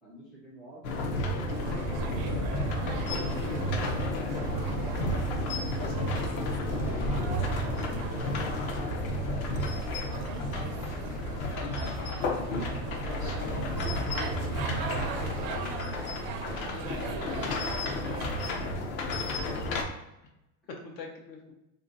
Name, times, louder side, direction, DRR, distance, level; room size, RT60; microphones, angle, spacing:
voice 1, 0.0-2.0 3.5-3.7 4.8-5.4 6.8-7.6 8.1-8.7 9.4-10.3 11.2-11.7 15.5-16.1, equal, ahead, -7 dB, 0.4 m, -50 dB
sound 1, 0.8-19.8, left 1 dB, 55° left, 0.7 m, -31 dB
sound 2, 1.5-18.8, right 6 dB, 60° right, 0.5 m, -41 dB
voice 2, 2.8-4.3 5.5-6.3 11.5-12.5 12.9-14.3 16.7-18.3 19.1-19.7 20.8-21.5, left 4 dB, 85° left, 1 dB, 1.0 m, -44 dB
3.4 x 2.7 x 2.6 m, 0.90 s
supercardioid pair, 135°, 49 cm